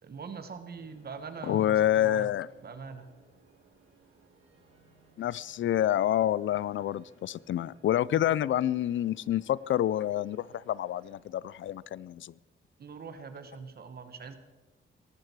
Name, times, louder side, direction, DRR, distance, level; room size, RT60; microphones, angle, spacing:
voice 1, 0.0-2.3 2.6-3.1 8.1-8.3 12.8-14.4, right 5 dB, 50° right, 9 dB, 1.6 m, -43 dB
sound 1, 0.7-11.2, right 4 dB, 80° right, 4.3 m, -62 dB
voice 2, 1.5-2.5 5.2-12.3, left 12 dB, 70° left, 22 dB, 0.4 m, -28 dB
18.0 x 14.0 x 4.7 m, 1.2 s
wide cardioid pair, 125°, 21 cm